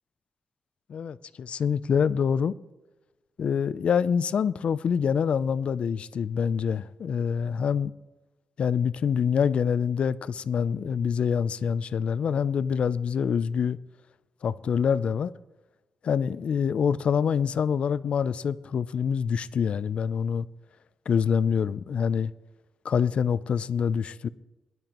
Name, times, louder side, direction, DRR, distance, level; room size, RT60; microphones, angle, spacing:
voice 1, 0.9-2.5 3.4-7.9 8.6-13.8 14.4-15.3 16.0-20.5 21.1-22.3 22.8-24.3, left 7 dB, 65° left, 0.3 m, -26 dB
19.5 x 11.0 x 2.9 m
cardioid pair, 105°, 2 cm